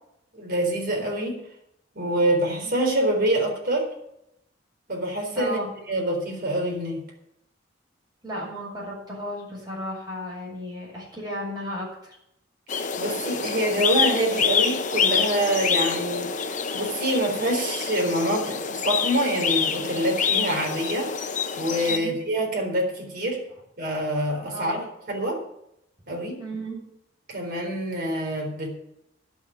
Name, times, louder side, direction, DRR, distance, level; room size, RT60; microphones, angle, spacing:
voice 1, 0.3-1.4 1.9-3.9 4.9-5.6 5.9-7.0 13.0-16.3 16.7-21.1 21.5-23.4 23.8-25.4 26.1-26.4 27.3-28.8, right 1 dB, 55° right, 1 dB, 4.0 m, -26 dB
voice 2, 5.3-5.7 8.2-12.2 21.9-22.2 24.4-24.8 26.4-26.8, equal, 20° right, -4 dB, 6.8 m, -34 dB
sound 1, 12.7-22.0, left 6 dB, 45° left, 0.8 m, -26 dB
11.5 x 7.1 x 9.0 m, 0.80 s
head